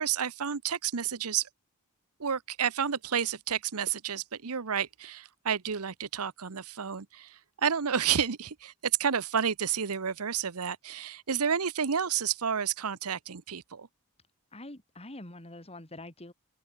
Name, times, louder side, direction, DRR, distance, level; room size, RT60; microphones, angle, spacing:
voice 1, 0.0-1.5 2.2-13.9, right 7 dB, 75° right, 0.9 m, -30 dB
voice 2, 14.5-16.3, left 1 dB, 30° left, 3.5 m, -45 dB
head